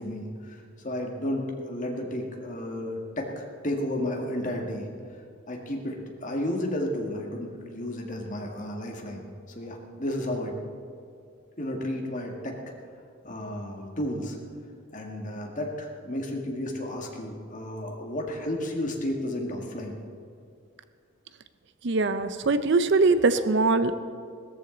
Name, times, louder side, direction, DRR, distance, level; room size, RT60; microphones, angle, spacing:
voice 1, 0.0-4.9 5.5-10.5 11.6-12.6 13.2-14.4 14.9-19.9, left 1 dB, 40° left, 1 dB, 1.9 m, -32 dB
voice 2, 21.8-24.0, right 3 dB, 60° right, 12 dB, 0.6 m, -22 dB
18.0 x 13.5 x 3.9 m, 2.3 s
head